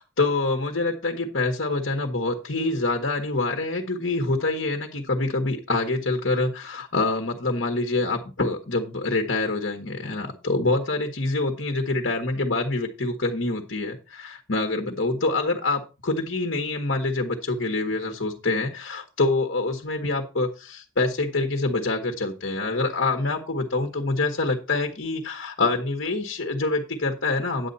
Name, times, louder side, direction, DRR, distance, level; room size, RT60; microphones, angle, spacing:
voice 1, 0.2-27.7, left 2 dB, 60° left, 3 dB, 1.6 m, -26 dB
10.0 x 8.3 x 4.2 m, 0.30 s
head